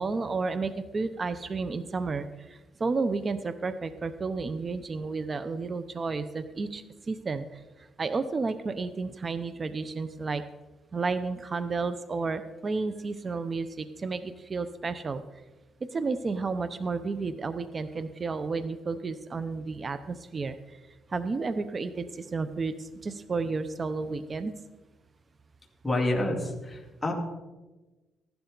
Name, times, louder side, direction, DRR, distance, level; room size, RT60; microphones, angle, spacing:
voice 1, 0.0-10.4 10.9-15.2 15.9-20.8 21.1-24.5, right 4 dB, 35° right, 12 dB, 0.7 m, -32 dB
voice 2, 25.8-27.1, left 1 dB, 15° left, -1 dB, 2.6 m, -28 dB
15.5 x 11.5 x 4.0 m, 1.1 s
cardioid pair, 90°, 0 cm